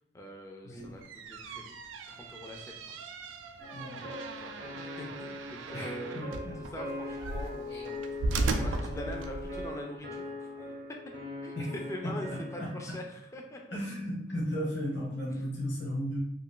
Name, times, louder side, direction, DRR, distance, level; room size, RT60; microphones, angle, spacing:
voice 1, 0.1-1.0 1.3-1.8 2.1-3.0 4.4-4.5 5.0-8.0 8.5-10.2 10.6-10.8 11.4-11.6 11.9-13.8 15.3-15.5, left 1 dB, 15° left, 1 dB, 0.3 m, -43 dB
sound 1, 0.8-9.7, right 2 dB, 85° right, 0.3 m, -37 dB
sound 2, 3.6-13.1, left 2 dB, 45° right, 0.6 m, -41 dB
voice 2, 3.7-4.1 5.7-6.6 7.7-7.8 11.5-11.6 12.0-12.7 13.7-16.2, equal, 70° left, -5 dB, 1.2 m, -35 dB
2.4 x 2.4 x 3.7 m, 0.84 s
head